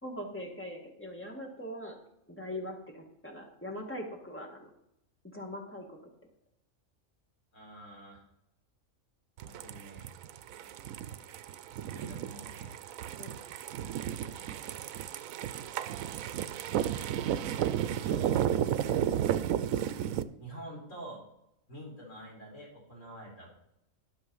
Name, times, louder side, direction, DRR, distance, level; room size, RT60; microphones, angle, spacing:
voice 1, 0.0-1.9 2.3-4.7 5.2-6.0 13.2-13.3, left 1 dB, 10° left, 0 dB, 1.8 m, -41 dB
voice 2, 7.5-8.2 9.4-10.1 11.9-12.7 18.0-18.5 20.4-21.2 21.7-23.5, right 1 dB, 60° left, -2 dB, 4.4 m, -47 dB
sound 1, 9.4-20.2, right 10 dB, 80° right, 1.0 m, -33 dB
12.0 x 5.8 x 5.5 m, 0.82 s
omnidirectional pair, 1.4 m